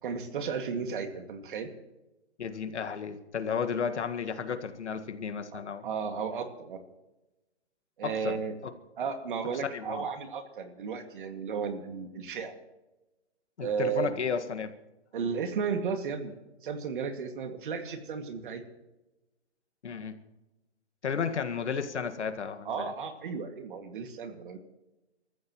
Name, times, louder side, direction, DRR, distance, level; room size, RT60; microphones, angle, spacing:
voice 1, 0.0-1.7 5.8-6.8 8.0-8.5 9.0-12.5 13.6-14.2 15.1-16.4 16.6-18.6 22.7-24.6, right 6 dB, 45° right, 6 dB, 2.2 m, -34 dB
voice 2, 2.4-5.9 8.0-8.7 9.5-10.1 13.6-14.7 19.8-20.2 21.0-22.9, left 6 dB, 75° left, 8 dB, 1.9 m, -33 dB
28.5 x 14.5 x 3.1 m, 1.0 s
hypercardioid pair, 160°, 35 cm